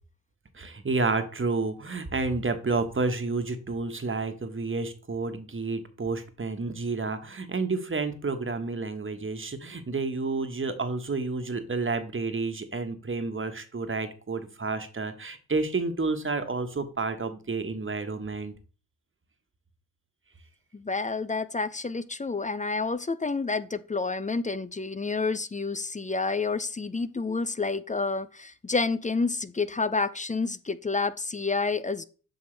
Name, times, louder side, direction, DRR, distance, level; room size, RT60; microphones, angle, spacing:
voice 1, 0.5-18.5, right 3 dB, 25° right, 8 dB, 1.4 m, -30 dB
voice 2, 20.7-32.0, left 4 dB, 15° left, 15 dB, 0.5 m, -29 dB
7.9 x 5.2 x 3.4 m, 0.37 s
supercardioid pair, 50°, 45 cm